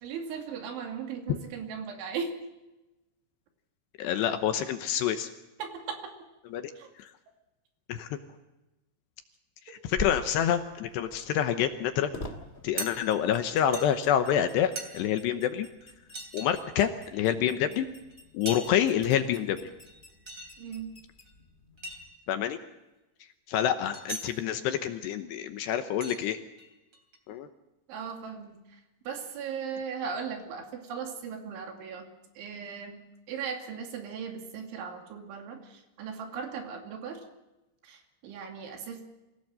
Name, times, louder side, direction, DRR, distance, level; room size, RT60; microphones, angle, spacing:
voice 1, 0.0-2.3 5.6-6.1 6.8-6.9 20.6-20.9 27.9-28.8 29.1-32.1 32.4-33.0 33.3-37.2 37.8-39.0, right 6 dB, 75° right, 4 dB, 4.8 m, -38 dB
voice 2, 4.0-5.3 6.5-6.7 7.0-7.1 7.9-8.2 9.7-12.1 12.6-15.7 16.3-17.9 18.3-19.7 22.3-22.6 23.5-26.4 27.3-27.5, left 10 dB, 75° left, 8 dB, 2.8 m, -27 dB
sound 1, 9.9-22.1, left 2 dB, 45° left, 0.8 m, -46 dB
sound 2, 12.8-12.9 13.7-13.9 14.8-14.9 15.8-15.9 16.1-16.5 18.1-18.2 18.5-18.8 19.7-20.5 21.2-21.3 21.8-22.0 23.9-24.3 25.4-25.5 26.0-26.2 26.6-27.2, right 3 dB, 30° right, 3.5 m, -38 dB
25.0 x 16.5 x 7.7 m, 1.0 s
omnidirectional pair, 5.6 m